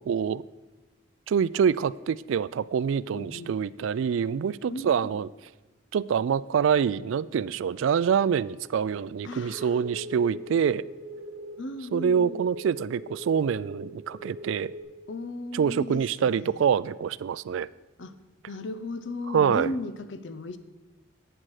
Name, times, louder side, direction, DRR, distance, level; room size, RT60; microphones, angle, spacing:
voice 1, 0.1-0.4 1.3-5.3 5.9-10.8 11.9-14.7 15.5-17.7 19.3-19.7, right 7 dB, 75° right, 19 dB, 0.3 m, -26 dB
voice 2, 3.1-3.5 4.7-5.2 9.2-9.8 11.6-12.4 15.1-16.6 18.0-18.2 18.5-20.6, left 2 dB, 65° left, 12 dB, 0.7 m, -36 dB
sound 1, 7.5-14.8, equal, 25° right, 1.7 m, -43 dB
11.5 x 9.0 x 4.9 m, 1.1 s
head